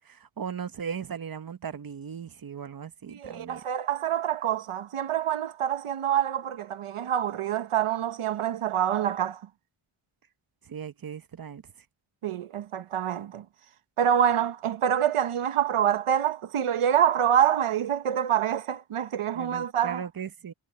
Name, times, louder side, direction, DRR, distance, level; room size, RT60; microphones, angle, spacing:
voice 1, 0.1-3.6 10.7-11.6 19.3-20.5, right 7 dB, 45° right, 1.0 m, -37 dB
voice 2, 3.1-9.4 12.2-13.4 14.0-20.1, right 9 dB, 90° right, 1.1 m, -26 dB
wide cardioid pair, 120°, 49 cm